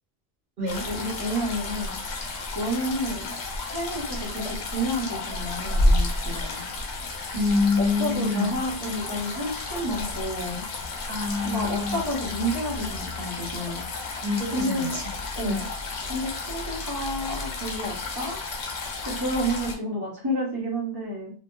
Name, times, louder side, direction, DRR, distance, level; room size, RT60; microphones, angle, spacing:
sound 1, 0.7-19.7, left 2 dB, 85° left, 0.9 m, -31 dB
voice 1, 0.8-2.0 2.5-3.4 3.7-6.6 7.8-10.6 11.4-13.8 14.5-15.0 15.3-15.6 16.1-18.4 19.0-21.3, equal, 25° right, -3 dB, 0.7 m, -30 dB
voice 2, 7.3-8.6 11.1-12.0 14.2-15.0 15.4-15.6, left 3 dB, 55° right, -3 dB, 1.0 m, -26 dB
2.9 x 2.2 x 2.2 m, 0.40 s
omnidirectional pair, 1.1 m